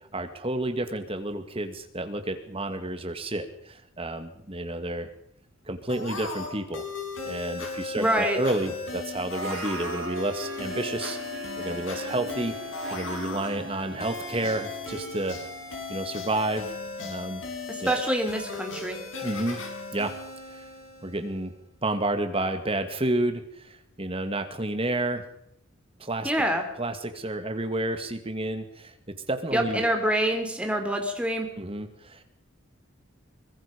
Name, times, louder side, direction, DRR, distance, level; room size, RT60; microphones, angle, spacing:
voice 1, 0.1-5.1 5.7-6.8 7.2-11.2 11.6-12.6 12.9-15.4 15.9-16.7 17.0-17.4 17.8-18.0 19.2-19.6 19.9-20.2 20.5-20.6 21.0-21.5 21.8-25.3 26.0-26.3 26.8-29.8 31.6-32.2, right 1 dB, 30° right, 7 dB, 2.3 m, -30 dB
sound 1, 5.9-21.4, left 4 dB, 75° left, 5.9 m, -37 dB
voice 2, 8.0-8.4 17.7-19.0 26.2-26.6 29.5-31.5, right 1 dB, 5° right, 3 dB, 3.4 m, -26 dB
Harp, 9.1-16.2, right 2 dB, 70° right, 7.6 m, -40 dB
24.0 x 21.5 x 5.3 m, 0.72 s
head